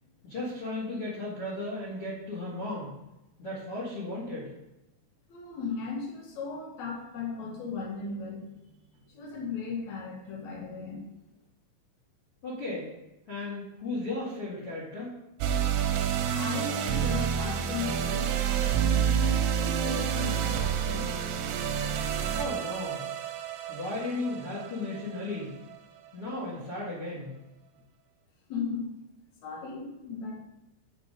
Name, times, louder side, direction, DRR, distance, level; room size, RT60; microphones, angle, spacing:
voice 1, 0.2-2.9 3.4-4.5 12.4-12.9 13.3-15.1 16.2-16.3 22.4-23.0 23.7-25.5 26.1-27.3, left 2 dB, 50° left, -5 dB, 1.8 m, -35 dB
voice 2, 5.3-8.7 9.1-11.1 16.3-18.3 18.6-21.2 28.5-28.9 29.4-30.4, left 4 dB, 75° left, -2 dB, 1.7 m, -37 dB
sound 1, 15.4-25.8, right 8 dB, 85° right, 2.8 m, -29 dB
6.6 x 6.1 x 5.1 m, 0.93 s
omnidirectional pair, 5.4 m